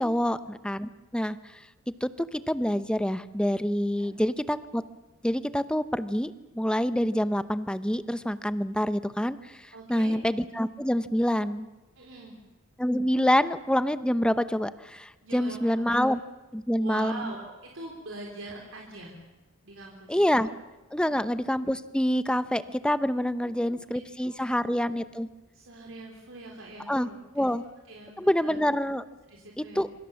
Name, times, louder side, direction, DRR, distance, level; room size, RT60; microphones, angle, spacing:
voice 1, 0.0-1.6 2.0-4.8 5.2-11.7 12.8-16.2 16.5-17.3 20.1-20.5 20.9-25.3 26.9-27.1 27.3-27.6 28.2-29.1 29.6-29.9, equal, 5° left, 13 dB, 0.8 m, -27 dB
voice 2, 9.7-10.2 12.0-12.3 15.2-16.0 16.7-19.1 19.6-20.1 21.0-21.2 23.4-23.8 24.2-24.7 25.5-27.5 27.9-28.5 29.3-29.8, right 2 dB, 75° right, 0 dB, 3.7 m, -43 dB
26.5 x 24.5 x 7.1 m, 1.1 s
head